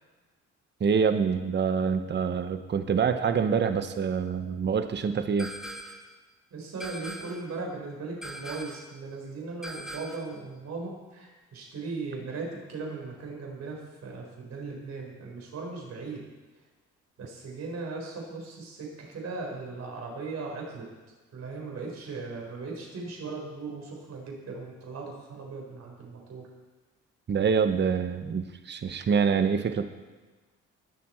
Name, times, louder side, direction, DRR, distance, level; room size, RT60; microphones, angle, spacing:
voice 1, 0.8-5.5 27.3-29.9, right 6 dB, 35° right, 9 dB, 0.8 m, -26 dB
sound 1, 5.4-6.1 6.8-7.5 8.2-8.9 9.6-10.4, right 1 dB, ahead, 1.4 m, -41 dB
voice 2, 6.5-16.2 17.2-20.8 21.3-26.4, right 3 dB, 60° right, -1 dB, 4.2 m, -38 dB
21.0 x 7.4 x 4.4 m, 1.2 s
cardioid pair, 90°, 30 cm